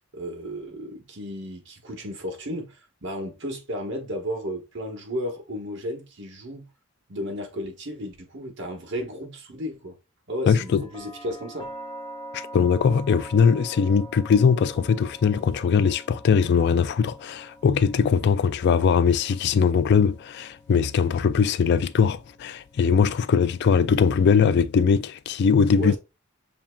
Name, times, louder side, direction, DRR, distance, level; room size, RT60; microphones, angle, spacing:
voice 1, 0.1-6.7 7.1-10.0 10.3-11.7 25.8-26.0, equal, 60° right, 1.2 m, -33 dB
voice 2, 10.5-10.8 12.3-26.0, left 6 dB, 55° left, 0.3 m, -21 dB
sound 1, 10.6-24.4, right 1 dB, 25° left, 0.9 m, -45 dB
7.2 x 2.8 x 2.2 m
head